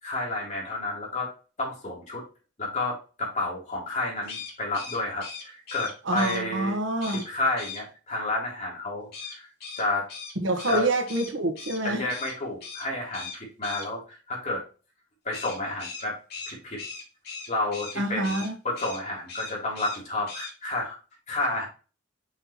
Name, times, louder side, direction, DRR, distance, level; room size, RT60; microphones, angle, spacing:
voice 1, 0.0-1.3 1.6-2.2 2.6-6.8 7.1-9.5 9.8-10.1 10.7-10.9 11.8-14.6 15.3-16.2 16.5-16.8 17.5-18.4 18.6-21.0 21.3-21.7, left 2 dB, 40° left, 3.4 m, -30 dB
sound 1, 4.2-6.4 7.0-7.3 7.6-7.8 9.1-11.8 12.1-12.3 12.6-12.9 13.1-13.9 15.3-18.0 18.2-18.5 18.7-19.0 19.3-20.0 20.3-20.5, left 4 dB, 55° left, 3.1 m, -39 dB
voice 2, 6.0-7.2 10.4-12.1 18.0-18.5, right 1 dB, 75° right, 1.4 m, -27 dB
6.3 x 5.9 x 3.1 m
head